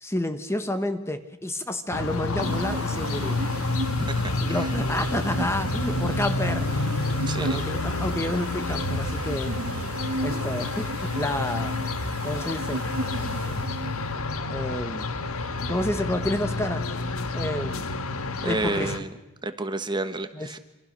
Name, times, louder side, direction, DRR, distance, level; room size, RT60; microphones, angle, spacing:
voice 1, 0.0-3.4 4.4-7.1 7.4-9.6 10.2-11.8 12.2-12.8 14.5-15.1 15.7-16.9 17.3-17.9 18.4-18.9 20.3-20.6, left 1 dB, 10° left, 9 dB, 1.2 m, -30 dB
sound 1, 1.9-19.0, left 2 dB, 75° left, 1.5 m, -29 dB
sound 2, 2.4-14.2, right 2 dB, 80° right, 1.1 m, -35 dB
voice 2, 4.0-4.7 7.3-7.6 18.4-19.1 19.4-20.6, right 2 dB, 20° right, 9 dB, 1.4 m, -30 dB
27.5 x 26.5 x 6.6 m, 1.0 s
head